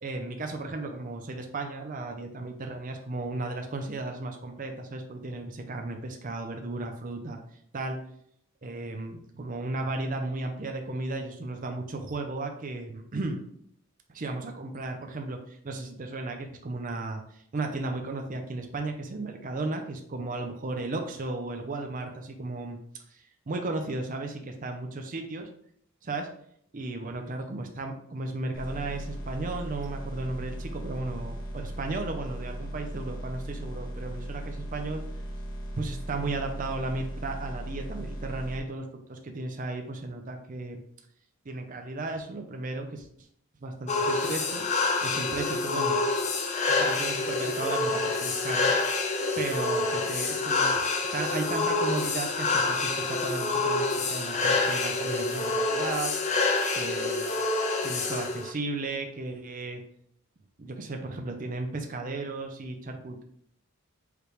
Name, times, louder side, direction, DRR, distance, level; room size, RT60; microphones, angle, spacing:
voice 1, 0.0-8.0 8.6-13.4 14.1-22.8 23.1-25.5 26.0-26.3 26.7-35.0 35.8-40.8 41.4-43.1 43.6-44.7 45.0-46.0 46.7-48.7 49.4-50.8 51.1-56.1 56.7-57.3 57.8-59.8 60.6-63.2, right 2 dB, 40° right, 4 dB, 0.5 m, -35 dB
sound 1, 28.5-38.6, right 1 dB, 65° left, 1.2 m, -37 dB
sound 2, 43.9-58.5, left 3 dB, 35° left, 0.5 m, -27 dB
4.9 x 3.3 x 3.1 m, 0.66 s
head